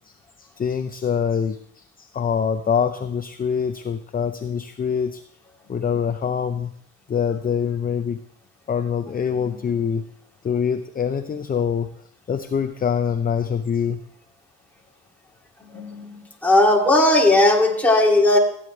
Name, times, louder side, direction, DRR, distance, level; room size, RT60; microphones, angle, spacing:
voice 1, 0.1-5.2 5.7-6.7 7.1-8.2 8.7-10.0 10.4-11.9 12.3-14.0, left 7 dB, 30° left, 9 dB, 0.6 m, -24 dB
voice 2, 15.6-18.4, left 2 dB, 5° left, -2 dB, 2.5 m, -17 dB
15.5 x 9.6 x 3.3 m, 0.66 s
cardioid pair, 90°, 30 cm